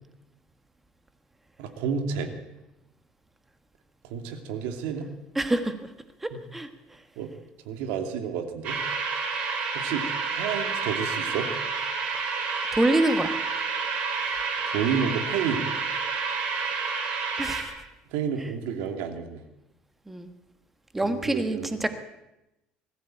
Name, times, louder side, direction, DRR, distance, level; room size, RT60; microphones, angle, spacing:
voice 1, 1.6-2.3 4.0-5.1 6.3-6.4 7.2-7.3 7.7-8.8 9.7-11.5 14.2-14.3 14.6-15.7 18.1-19.4 21.0-21.8, right 7 dB, 90° right, 6 dB, 2.6 m, -30 dB
voice 2, 5.3-5.7 6.2-6.7 12.7-13.3 17.4-17.6 20.1-20.3 20.9-21.9, right 1 dB, 5° right, 9 dB, 1.3 m, -25 dB
sound 1, 8.6-17.6, right 5 dB, 40° right, 4.3 m, -29 dB
21.0 x 14.5 x 9.0 m, 0.93 s
cardioid pair, 180°, 3 cm